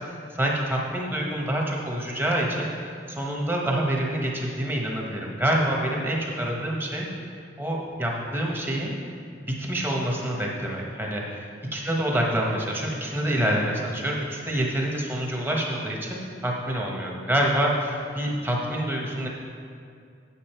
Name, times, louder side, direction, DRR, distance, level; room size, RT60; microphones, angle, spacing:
voice 1, 0.0-2.7 3.1-7.1 7.6-8.9 9.5-11.5 11.7-19.3, right 1 dB, 10° right, -2 dB, 1.2 m, -27 dB
8.5 x 7.7 x 4.4 m, 2.3 s
head